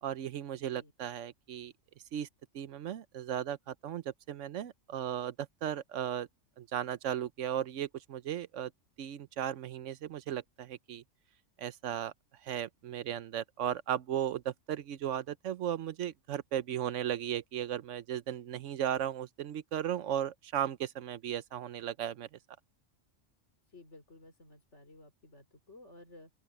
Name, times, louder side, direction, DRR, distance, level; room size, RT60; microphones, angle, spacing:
voice 1, 0.0-1.7 2.1-2.3 2.5-6.3 6.6-8.7 9.0-11.0 11.6-12.1 12.4-22.3, right 10 dB, 80° right, 1.0 m, -36 dB
voice 2, 23.7-26.3, left 2 dB, 65° left, 4.5 m, -55 dB
open air
omnidirectional pair, 1.3 m